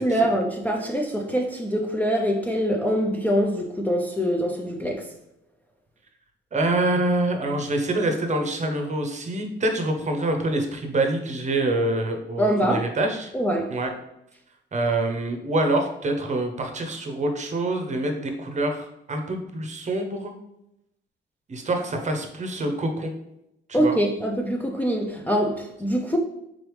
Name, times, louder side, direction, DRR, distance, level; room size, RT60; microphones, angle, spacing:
voice 1, 0.0-5.1 12.4-12.9 13.3-13.8 23.7-26.2, equal, 10° left, 0.4 m, -24 dB
voice 2, 6.5-13.3 13.7-13.9 14.7-20.3 21.5-23.1 23.7-24.0, right 2 dB, 35° right, 0.7 m, -26 dB
3.9 x 3.3 x 3.1 m
cardioid pair, 90°, 20 cm